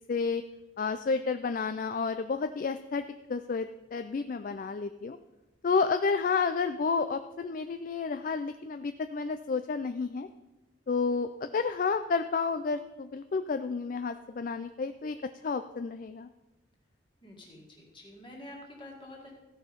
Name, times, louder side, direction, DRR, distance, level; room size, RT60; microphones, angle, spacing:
voice 1, 0.1-0.4 0.8-3.0 3.3-5.2 5.6-10.3 10.9-15.2 15.4-16.3, left 4 dB, 45° left, 9 dB, 0.3 m, -30 dB
voice 2, 17.2-19.4, left 1 dB, 25° left, -1 dB, 2.2 m, -48 dB
15.0 x 5.6 x 5.2 m, 1.0 s
head